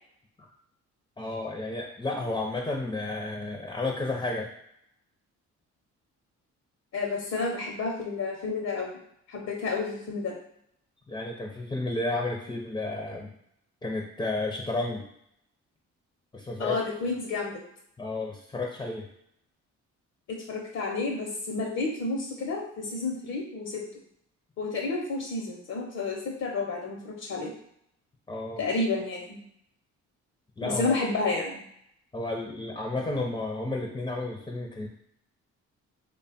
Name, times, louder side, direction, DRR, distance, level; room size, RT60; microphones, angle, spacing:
voice 1, 1.2-4.5 11.1-13.3 13.8-15.0 16.3-16.8 18.0-19.1 28.3-28.6 30.6-30.9 32.1-34.9, left 2 dB, 15° left, 0 dB, 0.6 m, -32 dB
voice 2, 6.9-8.9 9.3-10.3 16.6-17.6 20.3-23.8 24.6-27.5 28.6-29.4 30.6-31.6, left 3 dB, 60° left, 0 dB, 0.9 m, -30 dB
3.2 x 2.3 x 4.2 m, 0.73 s
cardioid pair, 90°, 30 cm